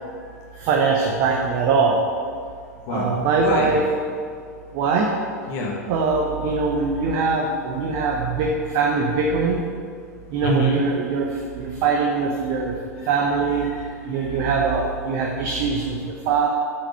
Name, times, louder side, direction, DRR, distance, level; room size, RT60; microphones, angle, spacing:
voice 1, 0.0-0.7 2.9-3.7 5.5-5.8 7.0-7.1 7.9-8.0 10.4-10.8 12.6-12.7 13.0-13.1 13.6-14.5, equal, 50° left, -1 dB, 1.4 m, -29 dB
voice 2, 0.6-2.0 2.9-3.8 4.7-5.1 5.9-9.6 10.3-11.3 11.5-12.7 13.1-13.7 14.0-16.5, right 4 dB, 50° right, 0 dB, 0.9 m, -22 dB
8.6 x 5.0 x 5.6 m, 2.1 s
figure-of-eight pair, 90°, 9 cm